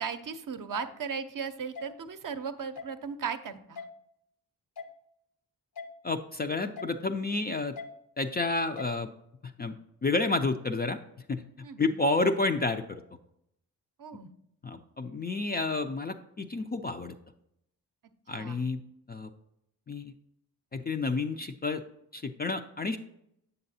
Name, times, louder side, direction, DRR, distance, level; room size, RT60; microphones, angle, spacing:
voice 1, 0.0-3.8 11.6-12.0 14.0-14.3 18.3-18.7, right 6 dB, 50° right, 9 dB, 0.6 m, -37 dB
sound 1, 0.8-0.9 1.8-1.9 2.8-2.9 3.8-3.9 4.8-4.9 5.8-5.9 6.8-6.9 7.8-7.9 8.8-8.9, left 5 dB, 55° left, 0.8 m, -40 dB
voice 2, 6.0-7.7 8.2-9.1 9.4-9.8 10.0-11.0 11.3-11.4 11.8-13.0 14.6-17.2 18.3-18.8 19.1-19.3 19.9-20.1 20.7-21.8 22.1-23.0, left 3 dB, 25° left, 7 dB, 0.4 m, -30 dB
6.9 x 6.7 x 2.7 m, 0.78 s
supercardioid pair, 45°, 43 cm